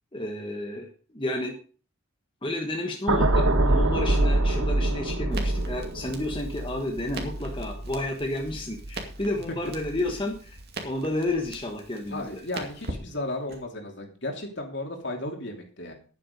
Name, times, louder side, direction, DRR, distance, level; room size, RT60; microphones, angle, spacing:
voice 1, 0.1-0.9 1.1-1.6 2.4-12.4, left 1 dB, 25° left, 1 dB, 1.3 m, -31 dB
sound 1, 3.1-9.4 9.7-10.0, right 2 dB, 75° right, 1.4 m, -25 dB
Crackle, 5.3-13.6, right 2 dB, 50° right, 2.3 m, -42 dB
voice 2, 12.1-15.9, left 2 dB, 55° left, 3 dB, 2.9 m, -34 dB
11.0 x 9.1 x 5.3 m, 0.41 s
head